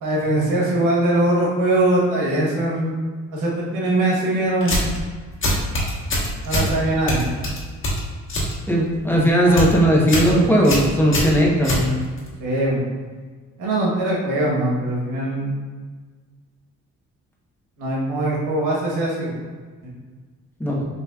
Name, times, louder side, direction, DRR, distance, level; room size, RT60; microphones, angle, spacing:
voice 1, 0.0-3.0 3.3-4.9 6.4-7.3 9.4-9.6 12.4-12.8 13.6-15.6 17.8-19.3, right 1 dB, 85° right, -4 dB, 1.3 m, -21 dB
sound 1, 4.6-5.0 5.4-6.7 7.1-8.5 8.9-9.2 9.4-9.7 10.1-10.3 10.6-12.3, left 1 dB, 40° left, 1.4 m, -23 dB
voice 2, 8.7-11.9 20.6-20.8, equal, 5° left, -4 dB, 0.9 m, -17 dB
5.6 x 3.1 x 2.4 m, 1.5 s
cardioid pair, 90°, 30 cm